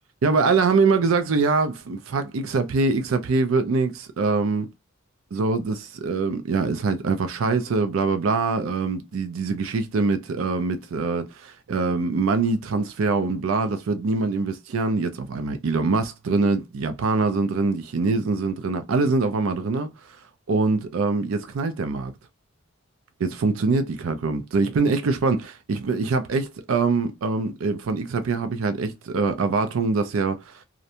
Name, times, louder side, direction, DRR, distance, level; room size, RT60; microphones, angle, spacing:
voice 1, 0.2-4.7 5.3-20.2 20.5-22.1 23.2-30.6, right 4 dB, 75° right, 0.4 m, -24 dB
2.5 x 2.1 x 2.7 m
head